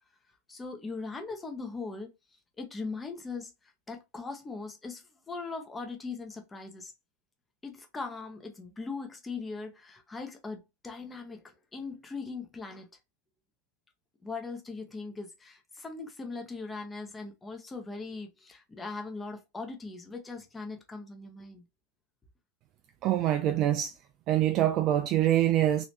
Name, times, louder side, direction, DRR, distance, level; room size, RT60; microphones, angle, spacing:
voice 1, 0.5-2.1 2.6-3.5 3.9-6.9 7.6-12.9 14.2-21.6, left 4 dB, 15° left, 0.8 m, -40 dB
voice 2, 23.0-24.0 24.3-25.8, right 12 dB, 35° right, 0.3 m, -25 dB
3.0 x 3.0 x 2.8 m
figure-of-eight pair, 90°, 0 cm